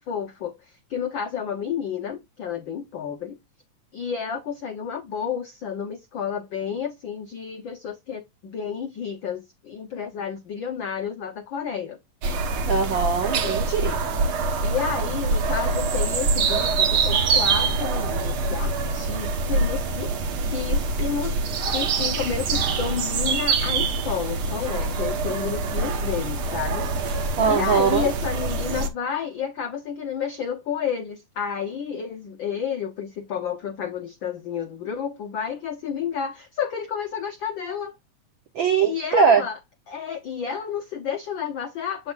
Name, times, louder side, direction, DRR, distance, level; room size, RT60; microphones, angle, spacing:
voice 1, 0.0-3.4 3.9-12.0 13.3-13.5 14.6-37.9 38.8-39.6 39.9-42.1, left 7 dB, 80° left, 1.0 m, -31 dB
sound 1, 12.2-28.9, right 4 dB, 55° right, 1.6 m, -25 dB
voice 2, 12.7-14.0 27.4-28.1 38.5-39.4, right 6 dB, 75° right, 1.1 m, -21 dB
7.8 x 5.8 x 2.5 m
omnidirectional pair, 3.4 m